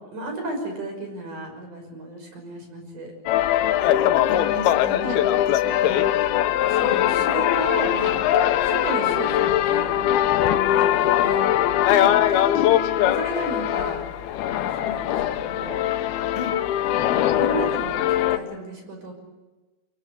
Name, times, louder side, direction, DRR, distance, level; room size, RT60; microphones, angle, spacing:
voice 1, 0.1-3.1 5.0-5.2 6.7-8.2 8.6-10.0 10.7-11.5 12.3-12.4 13.0-14.0 14.5-15.8 16.9-19.1, right 1 dB, 50° right, 4 dB, 7.2 m, -33 dB
sound 1, 3.3-18.4, left 12 dB, 80° left, 2.8 m, -21 dB
voice 2, 3.8-5.2 5.5-6.1 11.8-12.1 16.4-16.5, left 5 dB, 60° left, 3 dB, 3.7 m, -33 dB
25.0 x 23.5 x 8.3 m, 1.2 s
omnidirectional pair, 4.5 m